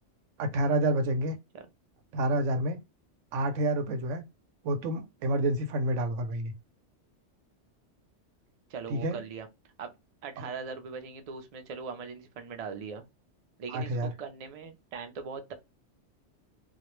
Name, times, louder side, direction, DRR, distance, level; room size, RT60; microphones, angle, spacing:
voice 1, 0.4-1.4 2.1-2.8 3.3-4.2 4.6-6.5 8.9-9.2 10.4-10.5 13.7-14.1, right 1 dB, 90° right, 0.9 m, -28 dB
voice 2, 8.7-9.5 9.8-9.9 10.2-13.1 13.6-15.5, right 5 dB, 60° right, 0.3 m, -40 dB
2.3 x 2.0 x 2.9 m
omnidirectional pair, 1.2 m